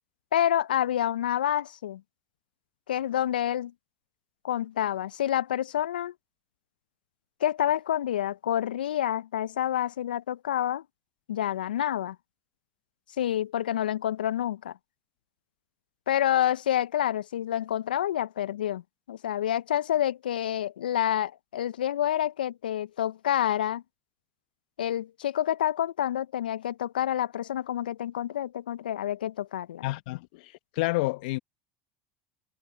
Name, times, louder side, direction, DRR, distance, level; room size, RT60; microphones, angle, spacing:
voice 1, 0.3-2.0 2.9-3.7 4.4-6.1 7.4-10.8 11.3-12.2 13.2-14.7 16.1-18.8 19.1-23.8 24.8-29.8, left 11 dB, 85° left, 0.4 m, -28 dB
voice 2, 29.8-31.4, left 21 dB, 70° left, 1.0 m, -30 dB
hypercardioid pair, 80°, 5 cm